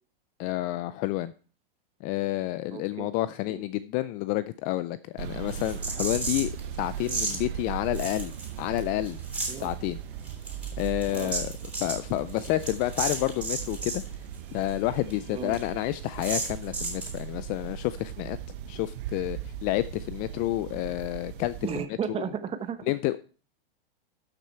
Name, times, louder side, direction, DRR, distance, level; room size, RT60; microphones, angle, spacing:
voice 1, 0.4-1.3 2.0-8.3 8.6-9.2 9.5-10.0 10.8-11.5 11.8-14.0 14.5-18.4 18.7-21.5 22.9-23.2, left 16 dB, 30° left, 15 dB, 0.4 m, -29 dB
voice 2, 2.7-3.1 3.5-3.6 9.5-9.7 11.1-11.3 15.3-15.5 21.6-22.9, right 7 dB, 20° right, 10 dB, 1.1 m, -34 dB
sound 1, 5.2-21.9, right 9 dB, 60° right, 0.9 m, -38 dB
sound 2, 5.5-6.6 7.0-7.4 7.9-8.8 9.0-9.7 10.2-14.1 14.3-14.4 14.7-14.8 15.1-15.2 15.5-15.6 16.2-17.2, right 2 dB, 5° right, 3.3 m, -33 dB
12.5 x 6.2 x 4.4 m, 0.38 s
hypercardioid pair, 130°, 30 cm